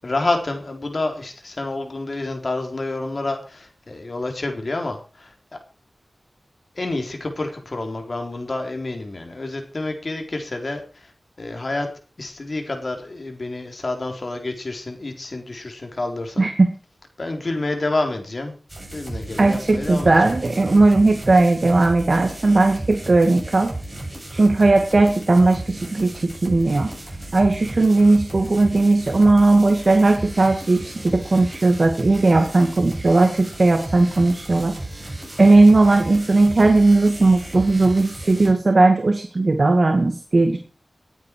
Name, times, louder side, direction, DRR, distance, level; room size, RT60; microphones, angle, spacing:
voice 1, 0.0-5.3 6.7-11.1 11.4-11.9 12.2-16.5 17.2-18.5 18.9-20.3, left 2 dB, 50° left, 4 dB, 4.1 m, -28 dB
voice 2, 16.4-16.7 19.4-23.7 24.3-26.9 27.3-34.8 35.4-40.6, right 2 dB, 50° right, 5 dB, 2.3 m, -17 dB
sound 1, 18.7-38.5, right 1 dB, 25° right, 7.7 m, -35 dB
18.5 x 9.4 x 4.7 m, 0.38 s
wide cardioid pair, 75°, 0 cm